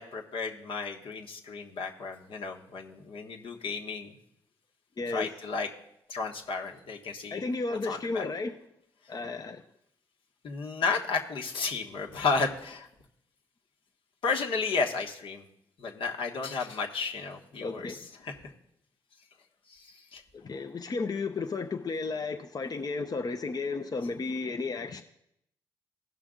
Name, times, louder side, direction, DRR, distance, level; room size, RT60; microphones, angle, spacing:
voice 1, 0.0-4.1 5.1-5.7 6.1-7.4 7.7-8.2 10.4-12.9 14.2-15.4 15.8-18.5 19.7-20.2, left 4 dB, 70° left, 1.3 m, -33 dB
voice 2, 5.0-5.3 7.3-8.5 9.1-9.6 17.6-18.0 20.4-25.0, left 3 dB, 45° left, 0.7 m, -33 dB
16.0 x 5.8 x 3.8 m
supercardioid pair, 50°, 9 cm